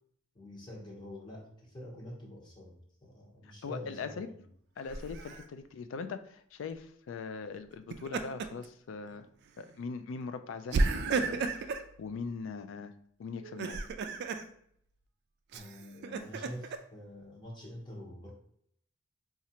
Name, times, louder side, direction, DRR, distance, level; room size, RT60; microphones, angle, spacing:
voice 1, 0.3-4.3 15.5-18.3, equal, 25° left, -4 dB, 0.9 m, -46 dB
voice 2, 3.4-4.3 4.8-9.3 9.6-11.7 12.0-12.9 13.2-13.8, left 5 dB, 65° left, 10 dB, 0.3 m, -41 dB
Laughter, 4.9-5.4 7.7-8.7 9.1-9.2 10.7-11.9 13.4-14.4 15.5-16.8, right 3 dB, 55° right, 0.3 m, -33 dB
4.2 x 2.4 x 2.8 m, 0.67 s
head